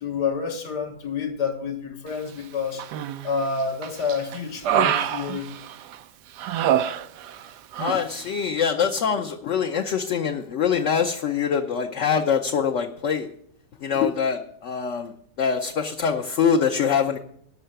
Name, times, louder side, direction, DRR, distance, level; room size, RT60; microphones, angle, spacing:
voice 1, 0.0-2.9 3.2-5.5, left 5 dB, 80° left, 3 dB, 2.1 m, -28 dB
Human voice, 2.8-3.4 3.8-6.0 6.4-7.5 7.7-8.0, right 10 dB, 85° right, 1.3 m, -25 dB
voice 2, 7.8-13.3 13.8-15.1 15.4-17.2, left 7 dB, 55° left, 3 dB, 0.9 m, -24 dB
12.5 x 5.5 x 9.0 m, 0.67 s
omnidirectional pair, 1.8 m